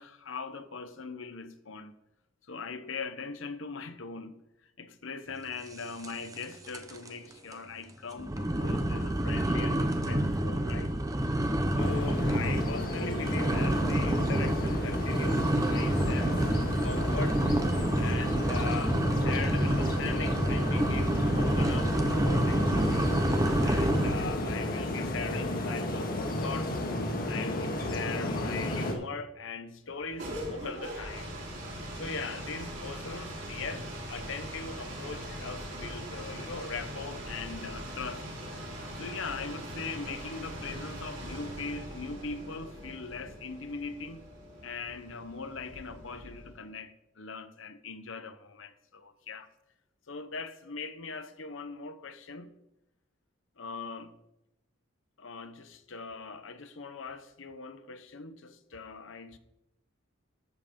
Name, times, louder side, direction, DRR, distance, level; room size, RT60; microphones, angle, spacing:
voice 1, 0.0-1.9 2.5-4.4 4.8-10.9 11.2-11.3 11.7-17.4 18.0-23.1 23.6-26.8 27.3-31.3 31.9-38.2 38.9-44.2 44.6-49.5 50.1-52.5 53.6-54.2 55.2-59.4, left 4 dB, 65° left, 0.9 m, -40 dB
sound 1, 6.0-6.4 6.7-7.1 7.5-7.6 8.2-24.4, right 1 dB, 15° right, 0.8 m, -28 dB
windy birch forest with birds, 11.8-28.9, left 1 dB, 45° left, 1.7 m, -34 dB
sound 2, 29.9-46.6, equal, 60° right, 4.1 m, -41 dB
13.5 x 5.5 x 5.3 m
head